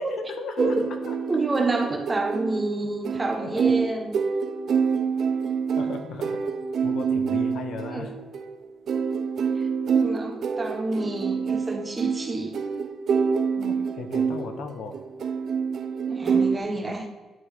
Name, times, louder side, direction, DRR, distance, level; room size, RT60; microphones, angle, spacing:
voice 1, 0.0-1.4 3.4-3.6 5.8-6.5 6.8-8.1 13.6-15.0, left 4 dB, 70° left, 1.5 m, -36 dB
sound 1, 0.6-16.6, right 6 dB, 55° right, 0.8 m, -27 dB
voice 2, 1.3-4.2 7.9-8.1 9.6-12.6 16.1-17.1, right 2 dB, 20° right, 1.4 m, -28 dB
12.0 x 9.8 x 3.8 m
cardioid pair, 130°, 0 cm